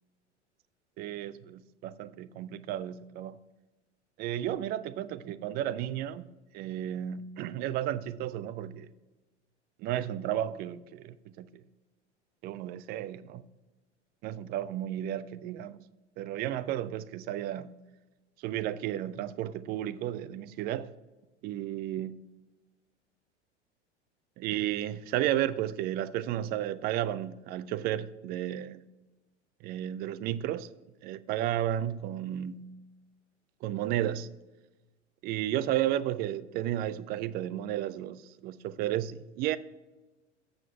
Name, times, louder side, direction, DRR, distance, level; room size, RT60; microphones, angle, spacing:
voice 1, 1.0-3.4 4.2-6.2 6.5-8.9 9.8-11.6 12.4-13.4 14.2-15.8 16.2-17.8 18.4-20.9 21.4-22.1 24.4-28.8 29.6-30.7 31.0-32.7 33.6-34.3 35.2-39.6, right 12 dB, 30° right, 0.4 m, -33 dB
7.6 x 6.4 x 5.6 m
figure-of-eight pair, 85°, 35 cm